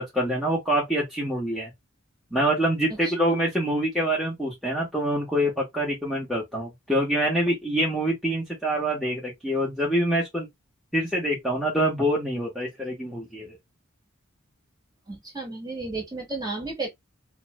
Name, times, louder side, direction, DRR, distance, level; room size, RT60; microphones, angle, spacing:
voice 1, 0.0-1.7 2.3-10.5 10.9-13.6, right 1 dB, ahead, 1.0 m, -25 dB
voice 2, 15.1-16.9, right 3 dB, 20° right, 1.2 m, -33 dB
2.9 x 2.2 x 2.9 m
head